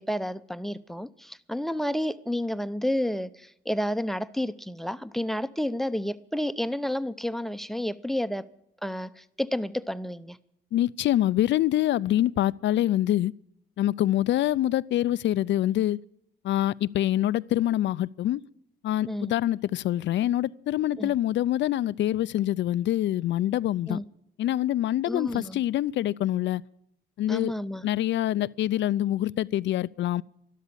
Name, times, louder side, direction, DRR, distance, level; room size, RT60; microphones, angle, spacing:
voice 1, 0.0-8.5 8.8-10.4 19.1-19.3 21.0-21.1 23.9-24.0 25.1-25.6 27.3-27.8, left 1 dB, ahead, 0.7 m, -30 dB
voice 2, 10.7-13.3 13.8-16.0 16.4-18.4 18.8-24.0 24.4-26.6 27.2-27.5 27.8-30.2, left 13 dB, 65° left, 0.5 m, -25 dB
12.5 x 12.5 x 8.5 m
cardioid pair, 90°, 20 cm